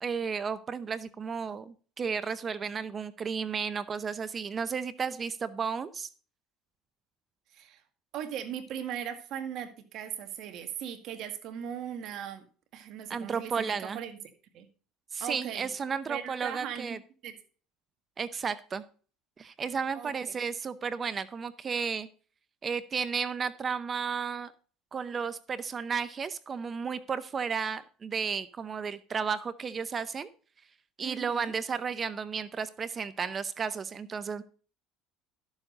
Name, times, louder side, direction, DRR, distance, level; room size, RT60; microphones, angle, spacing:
voice 1, 0.0-6.1 13.1-14.0 15.1-17.0 18.2-18.8 19.4-22.1 22.6-24.5 24.9-30.3 31.0-34.4, right 6 dB, 30° right, 14 dB, 0.7 m, -33 dB
voice 2, 8.1-12.5 12.7-14.2 14.5-14.7 15.2-15.7 16.1-17.0 17.2-17.3 19.9-20.3 31.0-31.5, right 9 dB, 55° right, 7 dB, 1.9 m, -39 dB
12.5 x 7.2 x 3.9 m, 0.40 s
supercardioid pair, 120°, 0 cm